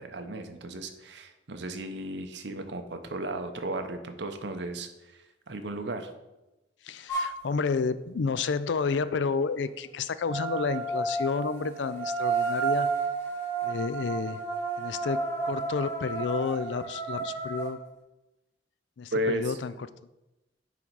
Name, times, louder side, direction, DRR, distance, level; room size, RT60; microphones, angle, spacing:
voice 1, 0.0-5.2 5.5-6.1 19.1-19.6, right 1 dB, 80° right, 7 dB, 0.8 m, -34 dB
voice 2, 6.8-12.9 13.6-14.4 14.8-17.8 19.0-19.7, left 5 dB, 85° left, 14 dB, 0.4 m, -30 dB
sound 1, 7.1-7.4 10.3-17.7, right 4 dB, 15° left, 1.5 m, -31 dB
9.4 x 3.9 x 4.6 m, 0.99 s
head